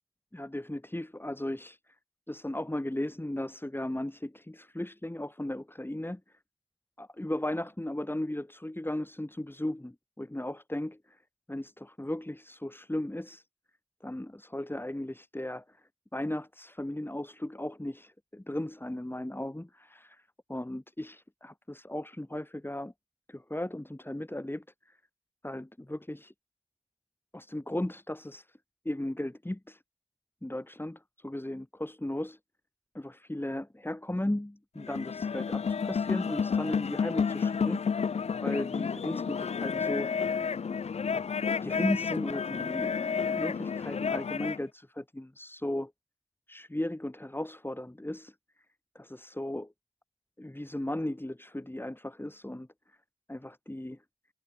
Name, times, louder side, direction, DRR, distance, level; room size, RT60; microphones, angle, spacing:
voice 1, 0.3-1.8 2.3-6.2 7.0-11.2 11.5-13.4 14.0-15.8 16.1-20.2 20.5-22.9 23.3-25.0 25.4-26.3 27.3-28.6 28.8-29.8 30.4-32.4 32.9-37.8 38.4-40.1 41.6-45.9 46.5-48.3 48.9-49.7 50.4-52.7 53.3-54.0, left 1 dB, 20° left, 3.0 m, -36 dB
sound 1, 34.8-44.6, left 6 dB, 65° left, 0.4 m, -31 dB
cardioid pair, 40°, 12 cm